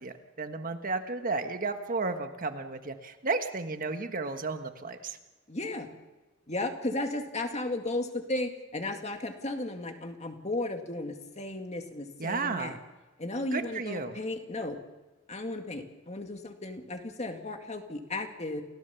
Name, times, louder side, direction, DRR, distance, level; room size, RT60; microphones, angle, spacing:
voice 1, 0.0-5.2 12.2-12.8 13.5-14.2, right 3 dB, 40° right, 7 dB, 1.4 m, -33 dB
voice 2, 5.5-5.9 6.5-12.7 13.2-14.8 15.3-18.6, left 2 dB, 35° left, 5 dB, 2.1 m, -34 dB
29.0 x 16.5 x 7.0 m, 1.2 s
head